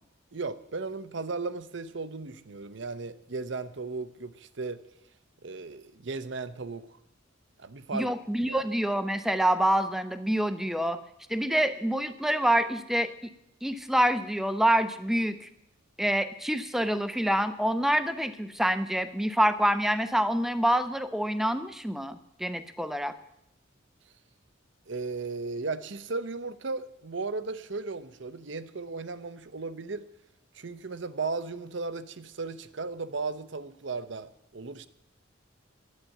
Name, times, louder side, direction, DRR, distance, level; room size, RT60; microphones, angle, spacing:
voice 1, 0.3-4.8 5.4-7.0 7.6-8.1 8.5-8.6 24.9-30.1 30.5-34.9, right 3 dB, 65° right, 13 dB, 0.8 m, -36 dB
voice 2, 7.9-11.0 11.3-13.1 13.6-15.5 16.0-23.1, right 1 dB, ahead, 11 dB, 0.6 m, -26 dB
11.5 x 8.5 x 9.1 m, 0.79 s
head